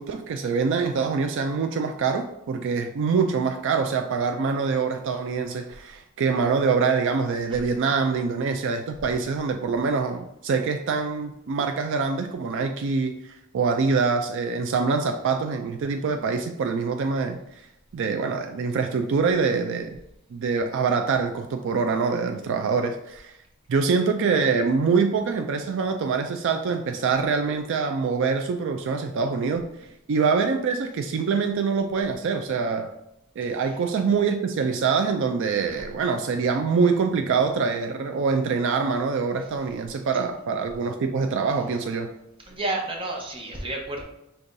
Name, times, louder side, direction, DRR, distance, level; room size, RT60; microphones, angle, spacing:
voice 1, 0.0-17.6 17.9-19.9 20.3-23.4 23.7-29.7 30.1-32.9 33.4-42.1, right 5 dB, 60° right, 5 dB, 0.3 m, -25 dB
voice 2, 42.5-44.0, right 2 dB, 25° right, 0 dB, 0.8 m, -30 dB
5.3 x 3.4 x 2.6 m, 0.85 s
head